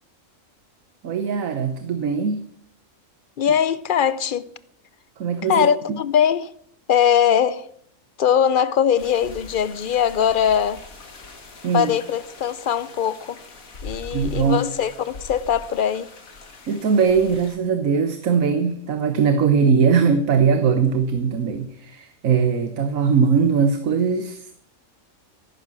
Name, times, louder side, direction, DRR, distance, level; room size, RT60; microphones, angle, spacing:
voice 1, 1.0-2.4 5.2-6.0 11.6-11.9 14.1-14.6 16.7-24.6, right 6 dB, 80° right, 1.4 m, -20 dB
voice 2, 3.4-4.5 5.5-6.5 6.9-7.7 8.2-10.8 11.7-13.4 13.8-16.1, left 8 dB, 50° left, 0.7 m, -21 dB
sound 1, 9.0-17.6, left 3 dB, 85° left, 2.3 m, -41 dB
14.5 x 11.5 x 6.2 m
omnidirectional pair, 1.4 m